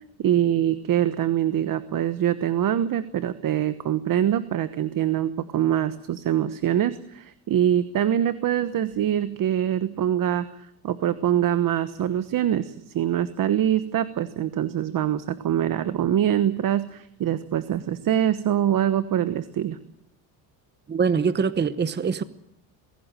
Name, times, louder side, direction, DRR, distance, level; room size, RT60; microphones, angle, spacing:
voice 1, 0.2-10.5 10.8-19.8, right 10 dB, 50° right, 1.2 m, -24 dB
voice 2, 20.9-22.2, right 6 dB, 25° right, 1.0 m, -23 dB
22.0 x 17.0 x 9.0 m
cardioid pair, 110°, 43 cm